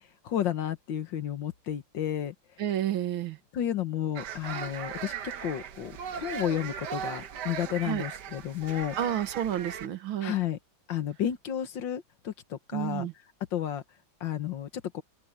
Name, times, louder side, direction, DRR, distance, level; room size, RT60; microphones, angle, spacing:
voice 1, 0.2-2.3 3.5-9.0 10.2-10.6 10.9-13.1 13.5-13.8 14.2-14.7 14.9-15.0, left 10 dB, 65° left, 1.9 m, -32 dB
voice 2, 2.6-3.4 7.8-8.0 9.0-10.3 12.7-13.1, right 11 dB, 85° right, 2.1 m, -30 dB
sound 1, 4.2-9.9, right 8 dB, 60° right, 1.5 m, -38 dB
open air
omnidirectional pair, 2.2 m